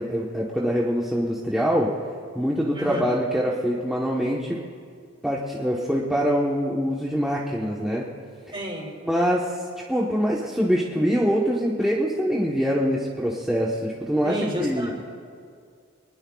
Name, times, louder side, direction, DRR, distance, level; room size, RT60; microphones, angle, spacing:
voice 1, 0.0-1.9 2.3-4.6 5.2-8.1 9.0-14.9, equal, ahead, -5 dB, 1.1 m, -24 dB
voice 2, 2.7-3.1 8.5-8.9 14.2-14.9, equal, 25° right, -2 dB, 3.9 m, -31 dB
24.5 x 20.0 x 2.4 m, 2.2 s
head